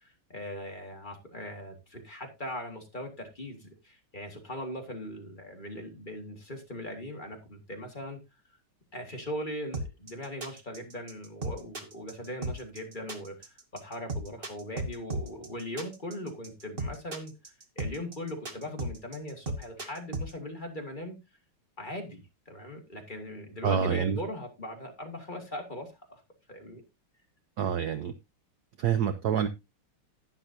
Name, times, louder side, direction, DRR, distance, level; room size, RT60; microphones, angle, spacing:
voice 1, 0.0-8.2 8.9-17.3 17.8-21.2 21.8-26.2 26.5-26.8, left 1 dB, 25° left, 3 dB, 1.7 m, -40 dB
sound 1, 9.7-20.3, right 2 dB, 30° right, 1.3 m, -35 dB
voice 2, 23.6-24.2 27.6-28.1 28.8-29.5, right 8 dB, 70° right, 11 dB, 1.0 m, -27 dB
11.0 x 10.5 x 2.7 m, 0.23 s
omnidirectional pair, 2.4 m